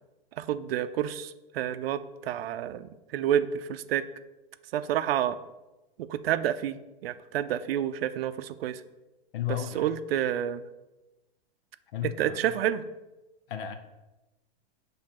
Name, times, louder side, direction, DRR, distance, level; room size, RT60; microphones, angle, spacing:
voice 1, 0.4-4.1 4.7-5.4 6.0-8.8 9.7-10.6 12.2-12.8, right 10 dB, 75° right, 13 dB, 0.5 m, -29 dB
voice 2, 9.3-9.9 11.9-12.4 13.5-13.8, left 11 dB, 60° left, 7 dB, 0.7 m, -33 dB
6.6 x 3.5 x 5.7 m, 1.0 s
supercardioid pair, 150°, 30 cm